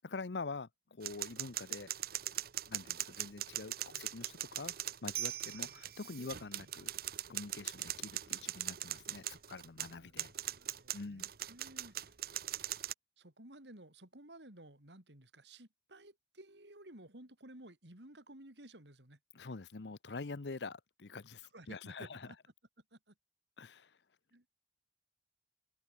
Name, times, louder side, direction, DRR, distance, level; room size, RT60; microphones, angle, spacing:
voice 1, 0.0-1.9 2.7-6.9 7.3-10.3 10.9-11.3 19.3-22.3 23.6-24.0, left 3 dB, 80° left, 0.8 m, -45 dB
sound 1, 1.0-12.9, right 13 dB, 60° right, 1.0 m, -41 dB
voice 2, 10.0-12.0 13.2-19.2 21.5-22.4 22.9-23.1 24.3-24.5, right 1 dB, 85° right, 5.1 m, -55 dB
head